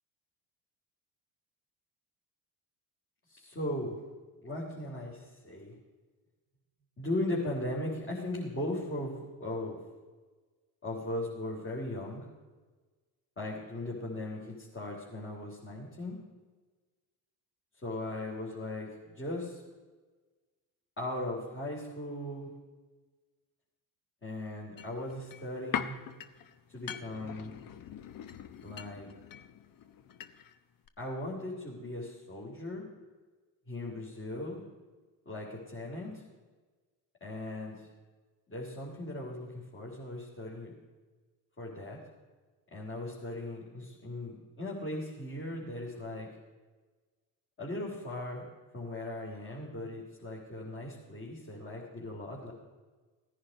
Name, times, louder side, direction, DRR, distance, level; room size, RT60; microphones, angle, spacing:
voice 1, 3.3-4.0 4.4-5.8 7.0-9.8 10.8-12.3 13.4-16.2 17.8-19.6 21.0-22.5 24.2-26.0 26.7-27.5 28.6-29.1 31.0-32.9 33.7-34.6 35.3-36.2 37.2-37.9 38.5-40.7 41.6-42.0 42.7-46.3 47.6-48.4 48.7-52.5, left 1 dB, 30° left, -5 dB, 3.5 m, -38 dB
sound 1, 24.8-30.6 30.9-31.0, left 9 dB, 50° left, 1.0 m, -42 dB
16.5 x 10.0 x 5.3 m, 1.3 s
supercardioid pair, 70°, 43 cm